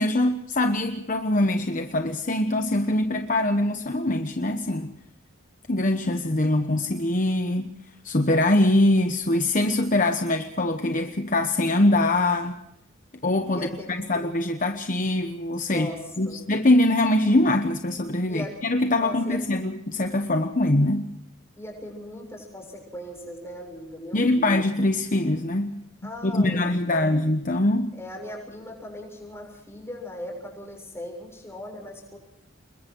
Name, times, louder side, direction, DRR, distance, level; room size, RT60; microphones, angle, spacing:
voice 1, 0.0-4.9 5.7-7.7 8.0-12.5 13.2-15.9 16.2-21.1 24.1-25.8 26.2-27.9, left 1 dB, 40° left, 6 dB, 1.1 m, -23 dB
voice 2, 13.5-14.3 15.7-16.4 18.3-18.6 19.0-19.4 21.6-24.6 26.0-27.1 27.9-32.2, left 1 dB, 15° left, 1 dB, 6.9 m, -39 dB
27.5 x 22.5 x 4.6 m, 0.78 s
head